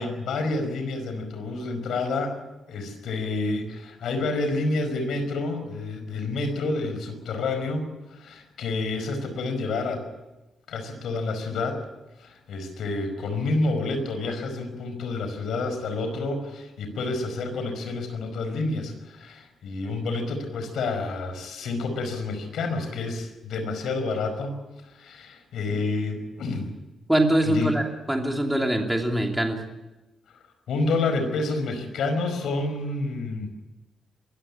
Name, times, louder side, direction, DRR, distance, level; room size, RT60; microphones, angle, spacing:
voice 1, 0.0-2.4 2.7-10.1 10.7-11.8 12.2-24.6 24.9-26.7 27.4-27.8 30.7-33.5, left 3 dB, 75° left, 7 dB, 5.1 m, -29 dB
voice 2, 27.1-29.6, right 1 dB, 5° right, 2 dB, 2.9 m, -23 dB
23.5 x 15.0 x 9.9 m, 1.1 s
wide cardioid pair, 175°, 0 cm